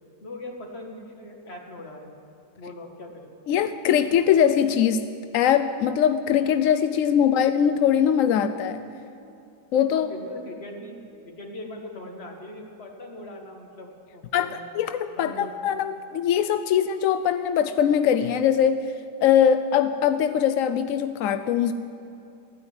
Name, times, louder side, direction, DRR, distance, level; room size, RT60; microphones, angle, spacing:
voice 1, 0.2-2.1 2.6-3.3 9.9-14.7 15.2-15.5, left 1 dB, 35° left, 2 dB, 1.9 m, -40 dB
voice 2, 3.5-8.8 9.7-10.1 14.3-18.9 19.2-21.7, left 9 dB, 75° left, 11 dB, 0.7 m, -22 dB
14.5 x 9.7 x 9.6 m, 2.7 s
omnidirectional pair, 1.9 m